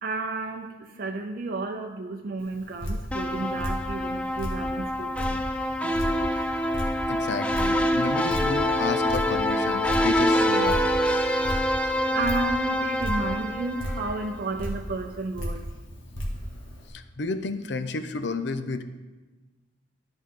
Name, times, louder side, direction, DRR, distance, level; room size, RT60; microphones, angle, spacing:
voice 1, 0.0-5.4 5.8-6.5 11.6-11.8 12.1-15.7, right 3 dB, 50° right, 3 dB, 0.5 m, -32 dB
Drip, 2.4-16.9, equal, 80° left, 2.0 m, -35 dB
sound 1, 3.1-14.3, equal, 5° left, 0.4 m, -26 dB
voice 2, 7.1-10.8 16.9-18.8, left 3 dB, 60° left, 10 dB, 0.5 m, -31 dB
13.0 x 5.2 x 3.7 m, 1.2 s
head